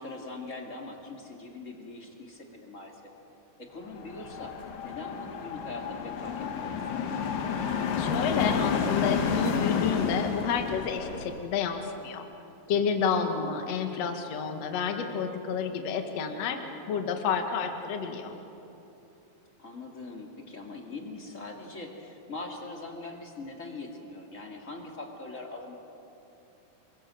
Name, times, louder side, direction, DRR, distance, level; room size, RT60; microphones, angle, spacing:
voice 1, 0.0-2.9 3.6-4.6 4.8-7.0 13.3-13.7 19.6-25.8, left 2 dB, 25° left, 1 dB, 2.2 m, -42 dB
sound 1, 4.0-11.4, left 6 dB, 75° left, 3.5 m, -30 dB
voice 2, 8.0-12.3 12.7-16.6 16.9-18.4, left 6 dB, 50° left, 5 dB, 2.5 m, -30 dB
28.5 x 23.5 x 7.8 m, 3.0 s
omnidirectional pair, 4.6 m